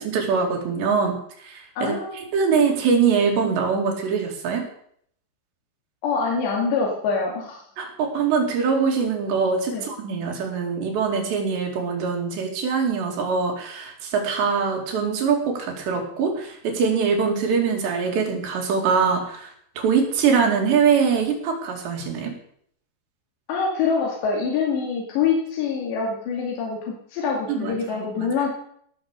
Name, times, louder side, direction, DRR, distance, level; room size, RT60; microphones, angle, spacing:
voice 1, 0.0-1.9 2.3-4.7 7.8-22.3 27.5-28.3, right 5 dB, 85° right, 2 dB, 4.7 m, -23 dB
voice 2, 1.8-2.2 6.0-7.6 9.7-9.9 23.5-28.5, left 5 dB, 90° left, -2 dB, 4.5 m, -25 dB
18.5 x 7.0 x 6.6 m, 0.66 s
omnidirectional pair, 4.9 m